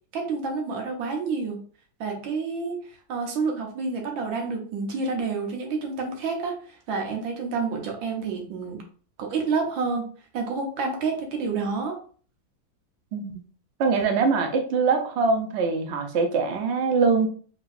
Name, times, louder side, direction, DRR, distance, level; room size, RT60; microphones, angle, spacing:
voice 1, 0.1-1.6 2.0-8.8 9.2-10.1 10.3-12.0, right 4 dB, 85° right, 2 dB, 1.8 m, -29 dB
voice 2, 13.1-13.4 13.8-17.3, right 4 dB, 60° right, 5 dB, 0.7 m, -23 dB
4.5 x 3.6 x 2.5 m, 0.43 s
omnidirectional pair, 2.1 m